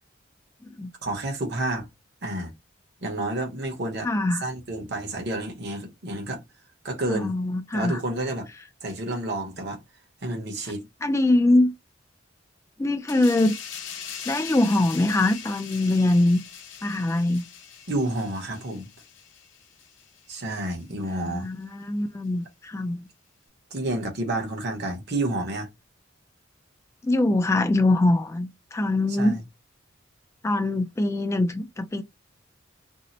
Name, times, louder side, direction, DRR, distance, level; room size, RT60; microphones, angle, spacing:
voice 1, 1.0-1.9 2.2-2.5 3.0-4.1 4.4-6.4 6.8-7.3 7.7-8.5 8.8-9.8 10.2-10.9 17.9-18.9 20.3-21.5 23.7-25.7 29.1-29.4, right 1 dB, 60° right, 1.0 m, -30 dB
voice 2, 4.0-4.4 7.1-8.0 11.0-11.7 12.8-13.6 14.3-16.4 16.8-17.5 21.0-23.1 27.0-29.4 30.4-32.0, left 2 dB, 15° left, 0.3 m, -23 dB
sound 1, 13.1-20.3 20.6-20.8, left 8 dB, 70° left, 0.7 m, -41 dB
2.7 x 2.1 x 4.0 m
head